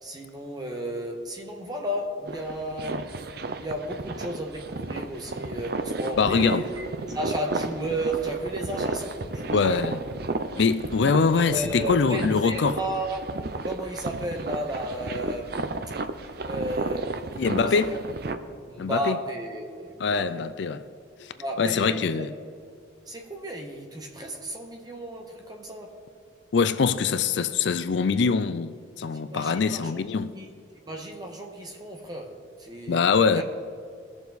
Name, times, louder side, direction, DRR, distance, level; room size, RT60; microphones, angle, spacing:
voice 1, 0.0-3.2 3.6-10.0 11.5-13.2 13.6-15.6 16.5-18.0 18.7-20.5 21.3-22.3 23.1-26.0 29.3-30.0 30.3-30.5 30.8-33.4, right 1 dB, 20° right, 1.3 m, -33 dB
sound 1, 2.2-18.4, right 3 dB, 50° right, 0.6 m, -33 dB
voice 2, 6.2-6.7 9.5-10.0 10.6-12.8 17.4-17.9 18.8-19.2 20.0-20.8 21.2-21.3 21.6-22.3 26.5-30.3 32.9-33.4, left 5 dB, 60° left, 0.4 m, -23 dB
20.5 x 7.0 x 4.1 m
head